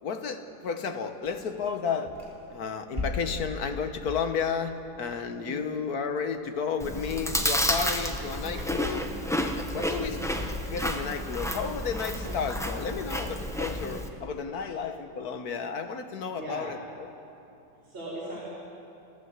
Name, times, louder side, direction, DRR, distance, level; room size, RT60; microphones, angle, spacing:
voice 1, 0.0-2.2 2.5-9.1 9.7-10.2 10.6-17.1, left 6 dB, 50° left, 8 dB, 1.4 m, -32 dB
sound 1, 1.2-2.5 2.9-5.3 6.4-6.6 7.0-7.3 8.4-9.0 9.5-10.1 10.4-10.9 11.2-14.8, left 3 dB, 15° right, 3.2 m, -40 dB
voice 2, 5.4-5.7 9.7-10.1 16.3-16.8 17.8-18.5, right 1 dB, 60° right, -7 dB, 5.4 m, -39 dB
Chewing mastication, 6.8-14.1, equal, 5° left, 0.5 m, -31 dB
29.0 x 13.5 x 8.2 m, 2.8 s
omnidirectional pair, 2.4 m